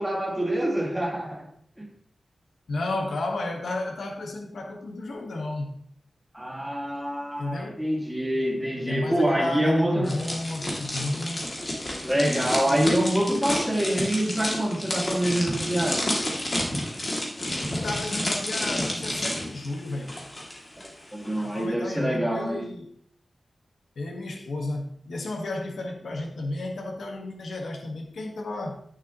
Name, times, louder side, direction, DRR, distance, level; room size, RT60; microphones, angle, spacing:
voice 1, 0.0-1.5 1.8-1.9 6.3-10.1 12.0-16.2 21.1-22.7, right 1 dB, 5° right, 0 dB, 2.1 m, -26 dB
voice 2, 2.7-5.8 7.4-7.9 8.8-11.4 17.7-20.2 21.4-22.9 23.9-28.8, left 2 dB, 85° left, 3 dB, 1.5 m, -32 dB
sound 1, 10.1-20.9 21.1-21.4, left 1 dB, 35° left, 2.5 m, -30 dB
10.5 x 6.9 x 3.0 m, 0.63 s
wide cardioid pair, 80°, 0 cm